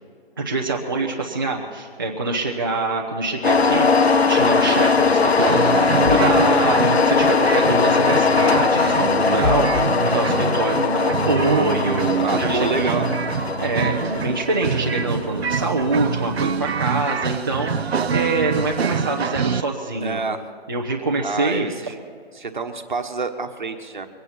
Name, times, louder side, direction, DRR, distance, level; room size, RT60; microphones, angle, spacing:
voice 1, 0.4-13.0 13.6-20.2 20.7-21.7, right 2 dB, 20° right, -3 dB, 0.9 m, -25 dB
sound 1, 3.4-16.2, left 4 dB, 85° left, 1.2 m, -20 dB
sound 2, 5.4-19.6, right 6 dB, 85° right, 0.8 m, -26 dB
voice 2, 12.2-13.1 20.0-20.4 21.2-22.0 22.3-24.1, right 4 dB, 50° right, 6 dB, 1.5 m, -27 dB
23.5 x 9.7 x 5.7 m, 2.1 s
hypercardioid pair, 175°, 31 cm